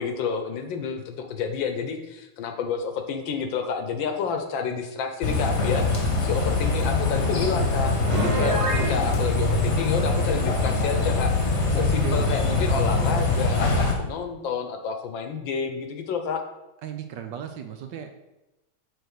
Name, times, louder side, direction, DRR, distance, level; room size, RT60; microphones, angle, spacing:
voice 1, 0.0-16.4, left 6 dB, 70° left, 6 dB, 1.5 m, -30 dB
sound 1, 5.2-13.9, left 3 dB, 40° left, 1.2 m, -23 dB
Piano, 8.1-8.9, right 1 dB, 30° right, 0.5 m, -27 dB
voice 2, 11.7-12.2 16.8-18.1, right 9 dB, 70° right, 6 dB, 1.2 m, -35 dB
6.7 x 4.2 x 6.3 m, 0.95 s
omnidirectional pair, 2.3 m